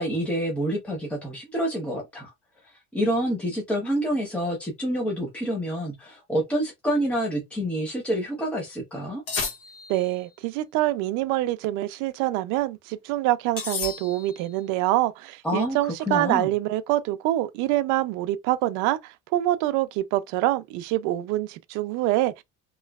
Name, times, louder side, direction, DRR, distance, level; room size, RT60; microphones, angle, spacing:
voice 1, 0.0-2.3 2.9-9.2 15.4-16.5, equal, 5° left, 0.8 m, -27 dB
sound 1, 9.3-10.2 13.6-14.5, left 5 dB, 45° left, 1.4 m, -32 dB
voice 2, 9.9-22.4, right 15 dB, 70° right, 0.6 m, -25 dB
3.1 x 3.0 x 2.3 m
cardioid pair, 160°, 31 cm